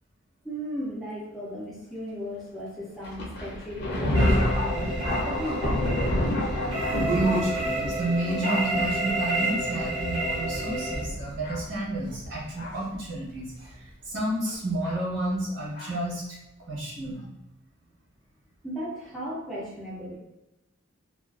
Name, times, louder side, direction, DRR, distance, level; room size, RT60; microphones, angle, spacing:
voice 1, 0.4-6.4 18.6-20.2, equal, ahead, -7 dB, 0.5 m, -36 dB
Thunder, 3.0-13.0 13.7-13.8 14.8-15.0 15.7-15.9, left 1 dB, 50° left, 0.5 m, -30 dB
sound 1, 3.2-3.3 4.2-4.6 5.1-5.7 7.0-7.6 8.2-8.9 9.4-9.6 11.2-11.4 12.0-12.2 12.7-12.9 13.6-13.7 14.4-14.5, right 2 dB, 45° right, 0.6 m, -36 dB
sound 2, 4.1-11.0, right 2 dB, 80° right, 1.2 m, -30 dB
voice 2, 7.0-16.2 16.7-17.3, right 1 dB, 60° right, -5 dB, 0.9 m, -30 dB
2.4 x 2.2 x 2.3 m, 0.94 s
head